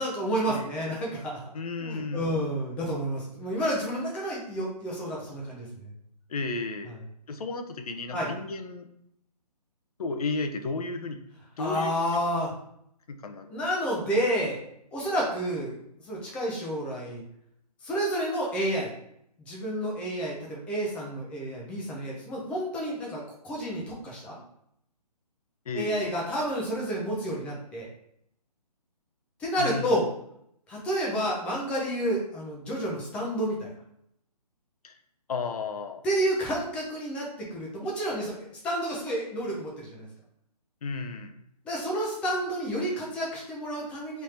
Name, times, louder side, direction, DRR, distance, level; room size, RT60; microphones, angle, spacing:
voice 1, 0.0-1.4 1.8-5.9 8.1-8.3 11.6-12.5 13.5-14.6 14.9-15.8 16.0-17.2 17.8-18.9 19.4-24.4 25.7-27.9 29.4-30.1 30.7-33.7 36.0-40.1 41.7-44.2, equal, 5° left, -3 dB, 0.4 m, -30 dB
voice 2, 1.5-2.3 6.3-6.9 7.3-8.9 10.0-11.2 11.6-12.2 13.1-13.6 25.7-26.1 29.6-30.0 34.8-35.0 35.3-36.0 40.8-41.3, left 3 dB, 65° left, 7 dB, 0.6 m, -33 dB
3.2 x 2.7 x 3.3 m, 0.73 s
figure-of-eight pair, 145°, 21 cm